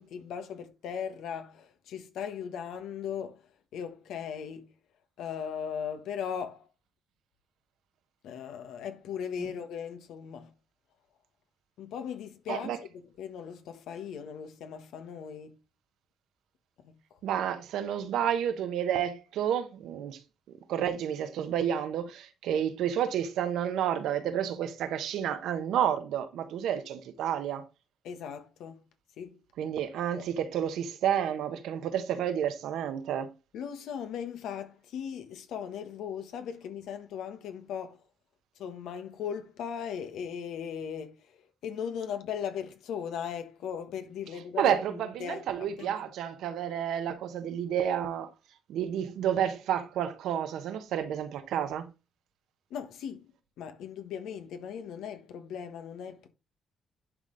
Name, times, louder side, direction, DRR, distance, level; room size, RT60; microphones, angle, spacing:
voice 1, 0.0-4.8 5.2-6.7 8.2-10.5 11.8-12.7 13.2-15.6 16.8-17.0 28.0-28.8 29.2-29.4 30.1-30.3 33.5-38.0 38.6-45.4 45.8-46.0 52.7-53.3 53.6-56.3, left 7 dB, 80° left, 1.3 m, -38 dB
voice 2, 17.2-20.2 20.7-27.7 29.6-33.3 44.6-48.3 48.7-51.9, right 9 dB, 85° right, 1.1 m, -30 dB
11.0 x 3.9 x 4.0 m
cardioid pair, 90°, 0 cm